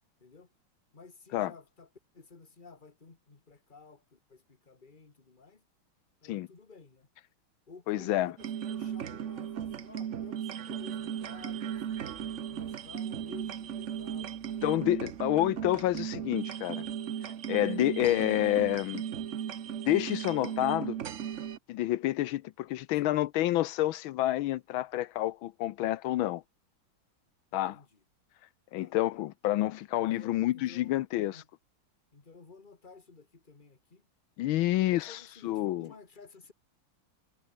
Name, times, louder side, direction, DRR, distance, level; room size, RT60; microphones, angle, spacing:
voice 1, 0.9-1.9 2.1-5.6 6.2-7.1 7.7-11.8 12.5-14.5 23.0-23.2 27.7-28.0 28.8-29.0 30.0-30.9 31.3-31.5 32.1-34.1 34.8-36.5, left 4 dB, 25° left, 2.1 m, -53 dB
voice 2, 7.9-8.3 14.6-16.8 17.5-19.0 19.9-21.0 21.7-26.4 27.5-27.8 28.7-31.4 34.4-35.9, left 15 dB, 75° left, 1.4 m, -29 dB
sound 1, 8.4-21.6, right 9 dB, 55° right, 0.8 m, -36 dB
omnidirectional pair, 2.4 m